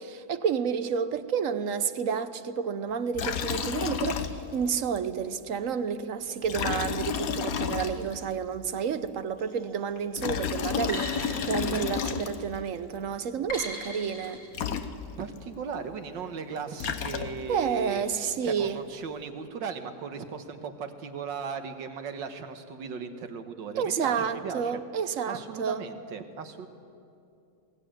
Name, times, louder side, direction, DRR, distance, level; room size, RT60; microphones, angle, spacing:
voice 1, 0.0-11.1 11.5-14.4 17.5-18.8 23.8-25.8, right 7 dB, 55° right, 11 dB, 1.0 m, -30 dB
Liquid, 3.1-4.7 5.0-5.1 6.4-8.3 10.0-12.6 14.2-14.3 14.5-15.4 16.5-17.6, left 7 dB, 55° left, 1.3 m, -31 dB
sound 1, 9.4-9.8 10.9-12.6 13.5-14.5, left 1 dB, 90° left, 6.0 m, -39 dB
voice 2, 15.2-24.8 25.3-26.7, right 5 dB, 85° right, 8 dB, 2.0 m, -37 dB
21.0 x 17.0 x 9.1 m, 2.6 s
omnidirectional pair, 1.9 m